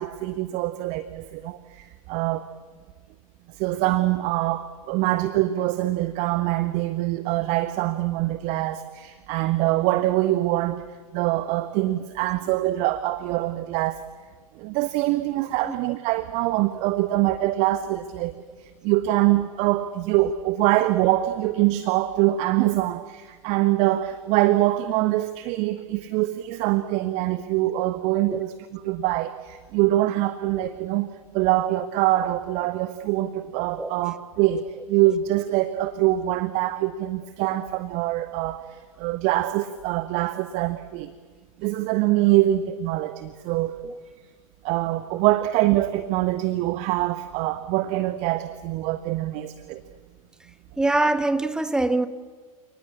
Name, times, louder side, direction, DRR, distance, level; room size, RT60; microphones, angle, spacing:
voice 1, 0.0-2.4 3.5-10.8 11.1-14.0 14.6-18.3 18.6-41.1 41.6-43.8 44.6-49.8, right 15 dB, 35° right, 12 dB, 1.3 m, -24 dB
voice 2, 50.8-52.1, right 2 dB, 5° right, 12 dB, 1.3 m, -23 dB
29.5 x 19.5 x 8.6 m, 1.5 s
figure-of-eight pair, 100°, 19 cm